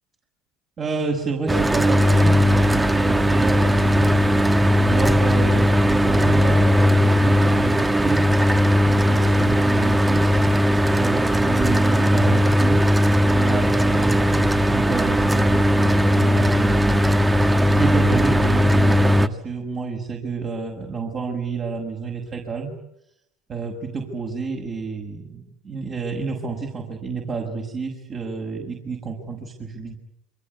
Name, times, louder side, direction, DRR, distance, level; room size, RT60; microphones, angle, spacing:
voice 1, 0.8-4.1 4.7-8.3 8.9-10.4 10.9-12.9 13.3-22.7 23.5-30.0, right 4 dB, 40° right, 1 dB, 6.5 m, -29 dB
Mechanical fan, 1.5-19.3, equal, 10° right, 1.7 m, -18 dB
28.5 x 24.5 x 8.5 m, 0.77 s
hypercardioid pair, 85°, 0 cm